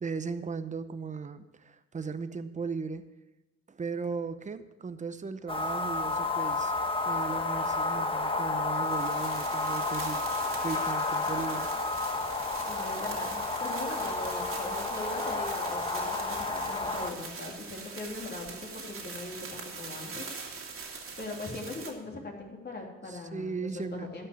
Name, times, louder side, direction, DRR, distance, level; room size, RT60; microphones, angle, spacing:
voice 1, 0.0-3.1 3.7-6.7 7.0-10.2 10.5-11.7 23.1-24.1, right 5 dB, 25° right, 11 dB, 0.8 m, -37 dB
sound 1, 5.5-17.1, left 3 dB, 15° left, 1.4 m, -31 dB
sound 2, 8.8-21.9, right 4 dB, 45° right, 2.3 m, -43 dB
voice 2, 12.7-20.2 21.2-24.3, left 2 dB, 35° left, 0 dB, 3.0 m, -40 dB
12.5 x 5.6 x 8.3 m, 1.0 s
cardioid pair, 90°, 30 cm